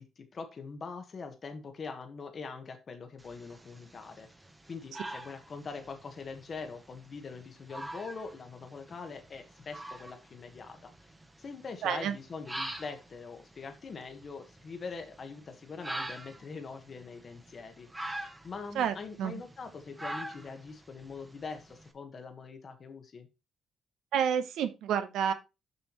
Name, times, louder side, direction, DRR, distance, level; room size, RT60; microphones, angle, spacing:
voice 1, 0.0-4.3 4.7-10.9 11.4-23.3, left 4 dB, 45° left, 6 dB, 1.3 m, -43 dB
sound 1, 3.2-21.9, right 1 dB, 10° right, 1.1 m, -45 dB
voice 2, 11.8-12.1 18.7-19.4 24.1-25.3, right 8 dB, 80° right, 9 dB, 1.0 m, -29 dB
6.9 x 5.7 x 3.0 m, 0.26 s
cardioid pair, 90°, 0 cm